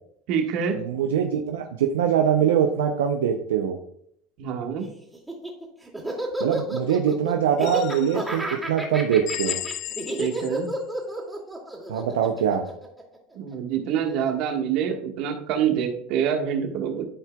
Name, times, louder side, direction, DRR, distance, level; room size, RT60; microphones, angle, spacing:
voice 1, 0.3-0.8 4.4-4.9 10.2-10.7 13.3-17.0, right 8 dB, 60° right, 3 dB, 1.5 m, -26 dB
voice 2, 0.8-3.8 6.4-9.6 11.9-12.6, right 8 dB, 85° right, 4 dB, 0.6 m, -23 dB
Laughter, 5.1-13.5, right 1 dB, 10° right, 2.3 m, -31 dB
sound 1, 7.6-8.4 9.3-10.7, left 14 dB, 50° left, 0.3 m, -34 dB
13.0 x 4.6 x 2.3 m, 0.68 s
supercardioid pair, 100°, 0 cm